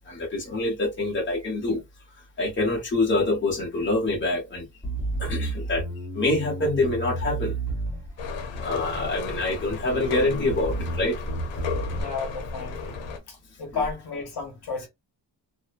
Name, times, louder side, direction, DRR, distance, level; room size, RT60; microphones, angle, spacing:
voice 1, 0.0-1.8 2.4-4.7 5.2-5.8 6.1-7.5 8.6-11.2, left 2 dB, 25° left, 1.0 m, -26 dB
Bass guitar, 4.8-8.4 9.0-9.6 9.9-12.0, right 1 dB, 5° left, 1.3 m, -31 dB
sound 1, 8.2-13.2, left 5 dB, 85° left, 0.7 m, -34 dB
voice 2, 11.9-13.0 13.3-14.9, left 4 dB, 60° left, 1.1 m, -33 dB
2.9 x 2.1 x 2.4 m
wide cardioid pair, 175°, 44 cm